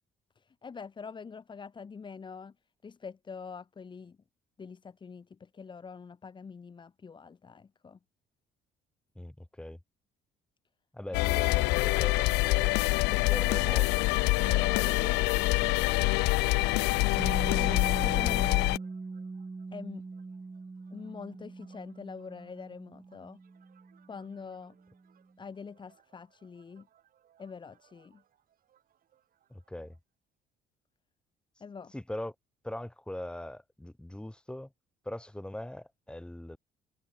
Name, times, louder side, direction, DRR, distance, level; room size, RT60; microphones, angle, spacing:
voice 1, 0.3-2.5 2.8-4.2 4.6-8.0 17.5-18.7 19.7-20.0 20.9-23.4 24.1-24.8 25.4-26.9 27.4-28.2 31.6-31.9, left 5 dB, 30° left, 1.4 m, -44 dB
voice 2, 9.1-9.8 10.9-16.1 29.5-29.9 31.9-32.3 32.6-34.7 35.0-36.6, left 1 dB, 5° left, 3.3 m, -41 dB
sound 1, 11.1-18.8, left 24 dB, 90° left, 0.4 m, -26 dB
Piano, 17.2-24.5, right 4 dB, 15° right, 0.9 m, -41 dB
sound 2, 17.6-30.0, right 10 dB, 55° right, 7.4 m, -68 dB
cardioid pair, 110°, 17 cm